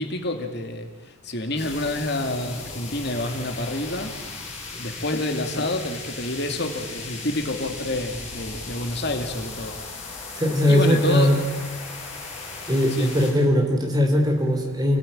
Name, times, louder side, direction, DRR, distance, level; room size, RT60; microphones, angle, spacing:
voice 1, 0.0-4.2 4.8-9.8 10.7-11.4 12.9-13.1, left 1 dB, 50° left, 5 dB, 2.4 m, -28 dB
sound 1, 1.6-13.3, left 3 dB, 30° left, 5.5 m, -37 dB
voice 2, 10.4-11.4 12.7-15.0, left 1 dB, 20° right, 3 dB, 3.5 m, -20 dB
29.0 x 18.0 x 8.9 m, 1.3 s
head